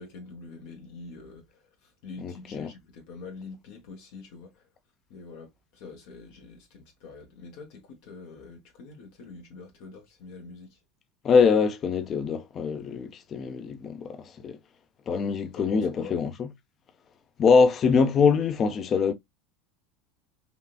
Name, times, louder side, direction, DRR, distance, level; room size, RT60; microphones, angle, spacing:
voice 1, 0.0-4.7 5.1-10.8 15.5-16.1, left 4 dB, 70° left, 1.1 m, -45 dB
voice 2, 2.2-2.7 11.2-14.6 15.1-16.5 17.4-19.1, left 5 dB, 40° left, 0.6 m, -23 dB
3.6 x 2.4 x 2.2 m
hypercardioid pair, 95°, 0 cm